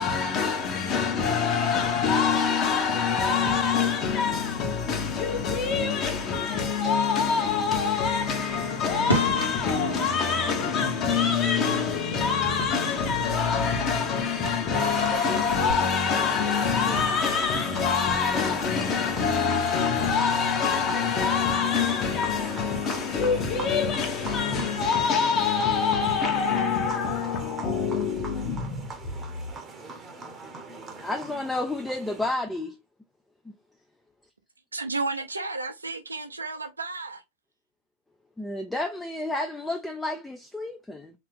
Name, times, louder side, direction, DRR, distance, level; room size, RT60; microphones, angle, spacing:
voice 1, 0.0-28.9, left 6 dB, 30° left, 1.2 m, -25 dB
Fireworks, 7.7-15.7, right 1 dB, 85° left, 1.5 m, -37 dB
Mallet percussion, 11.4-15.8, left 6 dB, 70° left, 1.4 m, -42 dB
sound 1, 14.8-32.3, right 4 dB, 20° right, 0.9 m, -41 dB
voice 2, 31.0-32.8 38.4-41.1, left 2 dB, 5° left, 0.4 m, -31 dB
voice 3, 34.7-37.2, right 3 dB, 80° right, 0.6 m, -32 dB
3.7 x 2.9 x 3.2 m
figure-of-eight pair, 90°, 0 cm